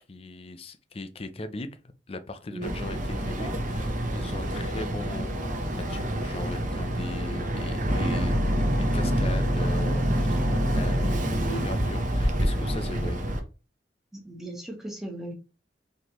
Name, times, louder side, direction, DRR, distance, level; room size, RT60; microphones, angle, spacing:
voice 1, 0.1-1.8 2.1-8.4 8.9-13.2, left 2 dB, 35° left, 0.5 m, -39 dB
Boat Water vehicle, 2.6-13.4, equal, 45° right, 0.8 m, -27 dB
voice 2, 14.1-15.3, right 2 dB, ahead, 1.2 m, -36 dB
4.2 x 3.2 x 3.0 m
head